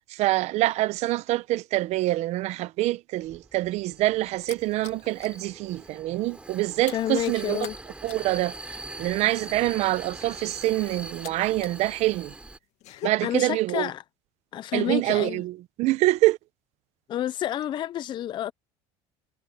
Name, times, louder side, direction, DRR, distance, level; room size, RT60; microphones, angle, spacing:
voice 1, 0.1-7.6 8.0-8.6 9.0-12.3 13.0-13.9 14.7-16.4, right 17 dB, 60° right, 0.9 m, -25 dB
Vehicle, 3.2-12.6, right 2 dB, 10° right, 2.9 m, -42 dB
sound 1, 3.6-5.4 5.8-6.0 6.3-11.8 12.1-13.1, left 14 dB, 60° left, 2.0 m, -44 dB
voice 2, 6.9-7.8 12.9-14.0 14.5-15.4 17.1-18.5, left 11 dB, 35° left, 0.5 m, -30 dB
cardioid pair, 125°, 13 cm